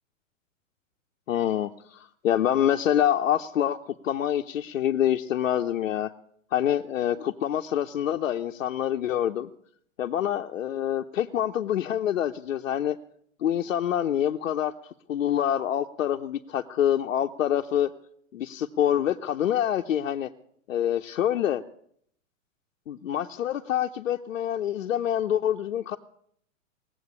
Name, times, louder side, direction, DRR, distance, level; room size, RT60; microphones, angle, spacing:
voice 1, 1.3-6.1 6.5-9.5 10.0-13.0 13.4-14.7 15.1-17.9 18.3-20.3 20.7-21.6 22.9-26.0, left 10 dB, 70° left, 3 dB, 0.9 m, -26 dB
18.5 x 7.9 x 9.6 m, 0.68 s
hypercardioid pair, 110°, 40 cm